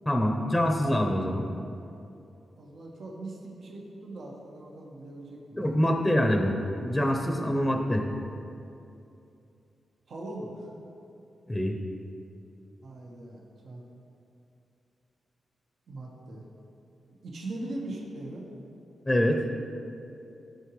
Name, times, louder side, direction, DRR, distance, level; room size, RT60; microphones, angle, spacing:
voice 1, 0.1-1.5 5.6-8.0 11.5-11.8 19.1-19.4, equal, 10° left, 2 dB, 0.8 m, -25 dB
voice 2, 2.6-5.6 10.1-10.7 12.8-13.8 15.9-16.4 17.2-18.4, right 2 dB, 65° right, -2 dB, 1.4 m, -40 dB
15.0 x 5.1 x 3.2 m, 2.7 s
cardioid pair, 100°, 0 cm